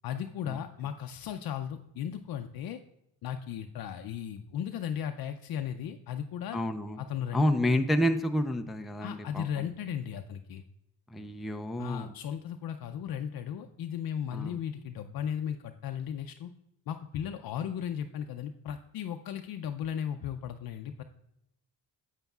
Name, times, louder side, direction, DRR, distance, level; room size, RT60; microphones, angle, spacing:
voice 1, 0.0-2.8 3.2-6.6 7.0-7.5 9.0-10.6 11.8-16.5 16.9-21.0, left 9 dB, 65° left, 6 dB, 0.5 m, -36 dB
voice 2, 6.5-7.0 7.3-9.7 11.1-12.1 14.3-14.6, equal, ahead, 6 dB, 0.4 m, -29 dB
9.2 x 8.1 x 2.3 m, 0.82 s
cardioid pair, 110°, 40 cm